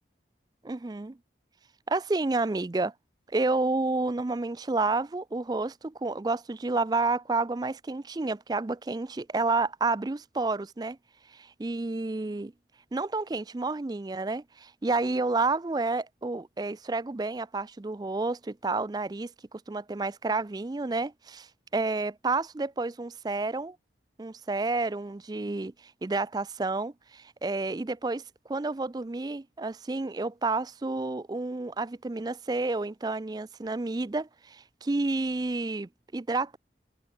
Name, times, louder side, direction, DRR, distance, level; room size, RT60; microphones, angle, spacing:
voice 1, 0.6-1.2 1.9-2.9 3.3-11.0 11.3-12.5 12.9-19.3 19.7-21.5 21.7-23.8 24.2-28.2 28.5-36.6, right 3 dB, 20° right, 0.4 m, -30 dB
head